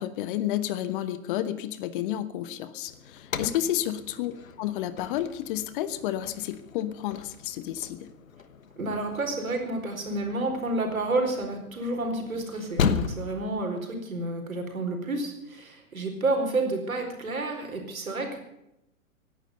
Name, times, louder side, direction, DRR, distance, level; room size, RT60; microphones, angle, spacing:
voice 1, 0.0-8.1, left 12 dB, 40° left, 13 dB, 1.1 m, -31 dB
sound 1, 2.9-13.5, left 6 dB, 70° left, 1.3 m, -36 dB
voice 2, 8.8-18.4, right 2 dB, 75° right, 3 dB, 4.5 m, -30 dB
17.5 x 11.0 x 6.7 m, 0.85 s
figure-of-eight pair, 110°, 42 cm